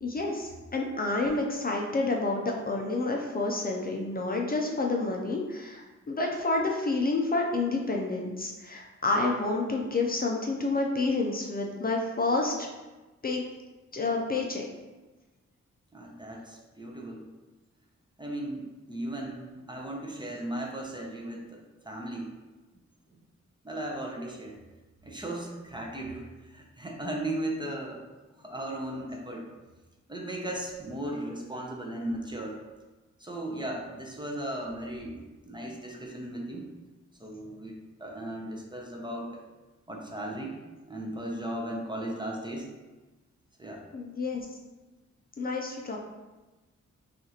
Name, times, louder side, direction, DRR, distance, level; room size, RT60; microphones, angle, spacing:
voice 1, 0.0-12.7 13.2-13.4 13.9-14.6 43.9-44.4 45.4-46.0, left 3 dB, 30° left, 0 dB, 0.5 m, -29 dB
voice 2, 15.9-17.2 18.2-22.3 23.6-24.6 25.0-28.1 28.4-29.5 30.1-32.6 33.2-36.7 37.2-39.4 39.9-40.5 40.9-42.7 43.6-43.8, right 1 dB, 15° right, 0 dB, 0.5 m, -36 dB
5.8 x 2.5 x 2.8 m, 1.2 s
wide cardioid pair, 140°, 29 cm